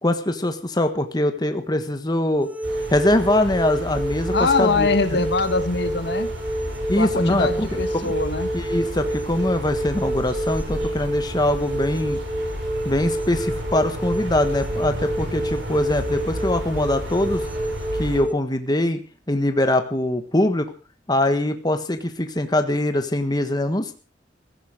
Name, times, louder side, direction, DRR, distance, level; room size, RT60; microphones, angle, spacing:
voice 1, 0.0-2.5 2.9-5.2 6.9-8.1 8.5-12.2 12.8-17.4 18.0-19.0 19.3-20.7 21.1-23.9, left 1 dB, 20° left, 7 dB, 1.5 m, -23 dB
sound 1, 2.4-18.3, right 1 dB, 10° right, 1.9 m, -28 dB
sound 2, 2.6-18.2, right 1 dB, 80° right, 6.8 m, -32 dB
voice 2, 4.3-6.3 6.9-8.5, left 3 dB, 60° left, 11 dB, 1.5 m, -23 dB
16.5 x 15.0 x 5.1 m, 0.36 s
head